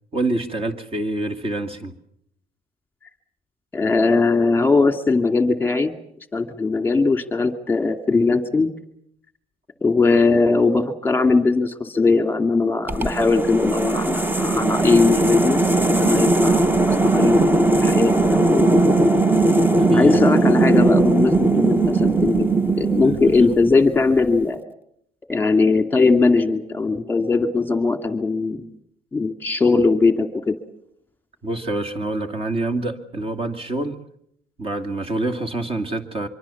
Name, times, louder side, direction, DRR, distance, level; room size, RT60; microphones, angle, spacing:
voice 1, 0.1-2.0 19.8-20.2 23.0-23.3 31.4-34.0 34.6-36.3, right 2 dB, 35° right, 7 dB, 2.6 m, -26 dB
voice 2, 3.7-5.9 6.3-8.7 9.8-18.7 19.9-22.5 22.8-24.6 25.3-28.7 29.1-30.5, left 3 dB, 10° left, 7 dB, 2.4 m, -19 dB
sound 1, 12.9-24.0, right 2 dB, 10° right, 0.9 m, -18 dB
25.0 x 23.5 x 7.2 m, 0.73 s
cardioid pair, 110°, 17 cm